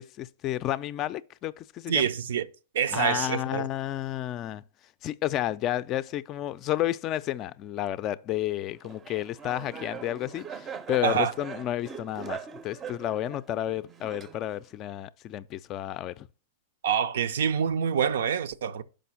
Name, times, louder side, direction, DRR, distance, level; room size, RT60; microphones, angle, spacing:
voice 1, 0.0-2.1 2.9-4.6 5.0-16.3, left 13 dB, 35° left, 0.4 m, -31 dB
voice 2, 1.9-2.5 2.7-3.7 11.0-11.3 16.8-18.8, right 7 dB, 80° right, 0.6 m, -26 dB
Laughter, 8.8-14.7, right 6 dB, 20° right, 0.6 m, -41 dB
6.0 x 5.2 x 5.7 m
supercardioid pair, 145°, 0 cm